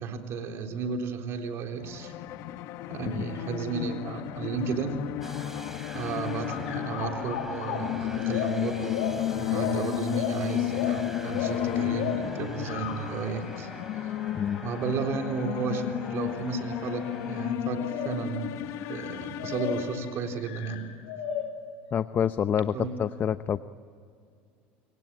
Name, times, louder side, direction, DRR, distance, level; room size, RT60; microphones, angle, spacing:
voice 1, 0.0-2.1 2.9-5.0 5.9-13.7 14.6-20.8 22.7-22.9, right 5 dB, 55° right, 4 dB, 3.8 m, -33 dB
sound 1, 1.8-20.6, left 14 dB, 65° left, 1.4 m, -33 dB
sound 2, 5.2-17.5, right 1 dB, 5° right, 3.0 m, -46 dB
sound 3, 6.5-13.2 13.8-13.9 14.7-15.1 16.0-16.2 17.3-17.5 17.8-18.3 18.8-20.0 20.4-21.7, left 7 dB, 85° left, 6.5 m, -35 dB
voice 2, 21.9-23.6, left 8 dB, 40° left, 12 dB, 0.8 m, -27 dB
27.0 x 23.5 x 9.1 m, 2.3 s
supercardioid pair, 100°, 5 cm